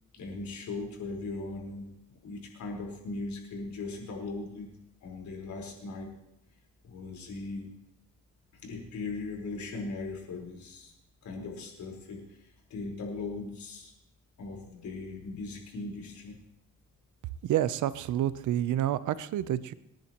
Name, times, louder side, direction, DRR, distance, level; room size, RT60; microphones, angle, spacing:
voice 1, 0.1-4.7 5.0-6.1 6.8-7.7 8.5-10.9 11.2-13.9 14.4-16.4, left 3 dB, 70° left, 0 dB, 4.6 m, -39 dB
voice 2, 17.4-19.7, right 12 dB, 75° right, 15 dB, 0.8 m, -29 dB
28.0 x 10.5 x 3.1 m, 0.83 s
cardioid pair, 90°, 30 cm